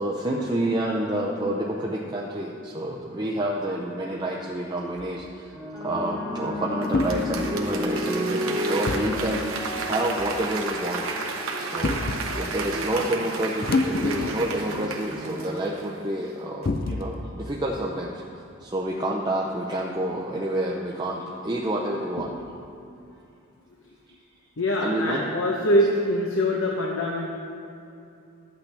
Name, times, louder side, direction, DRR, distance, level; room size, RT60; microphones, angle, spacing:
voice 1, 0.0-5.5 5.8-11.1 11.6-12.0 12.4-18.2 18.6-22.3 24.8-25.2, right 1 dB, 20° right, -2 dB, 0.5 m, -28 dB
sound 1, 5.0-5.2 6.9-7.2 8.9-9.1 10.2-10.4 11.8-12.3 13.6-14.5 14.8-14.9 16.6-17.2, left 3 dB, 40° left, 0.4 m, -26 dB
sound 2, 5.5-14.1 15.0-15.4, left 1 dB, 15° left, 1.5 m, -33 dB
Applause / Crowd, 6.8-16.2 16.6-16.7, right 3 dB, 70° right, 1.0 m, -33 dB
voice 2, 24.6-27.3, equal, 60° left, -1 dB, 0.8 m, -24 dB
13.0 x 8.3 x 3.4 m, 2.6 s
head